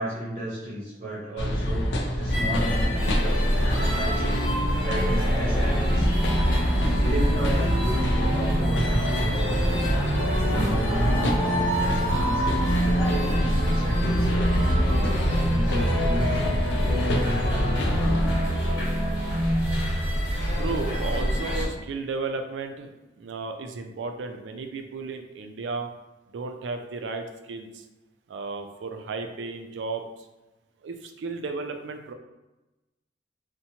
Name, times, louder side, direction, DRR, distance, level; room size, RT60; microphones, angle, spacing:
voice 1, 0.0-4.4 4.8-6.0 6.6-9.9 10.3-12.4 12.8-16.6 17.1-18.1, right 1 dB, 40° right, -7 dB, 0.7 m, -34 dB
sound 1, 1.4-18.4, equal, 90° left, 0.4 m, -27 dB
sound 2, 2.3-21.7, equal, 65° left, 1.2 m, -25 dB
voice 2, 20.6-22.9 23.2-25.9 26.3-27.8 28.3-30.0 30.8-32.1, right 3 dB, 85° right, 6 dB, 0.3 m, -33 dB
2.7 x 2.1 x 2.7 m, 1.1 s
head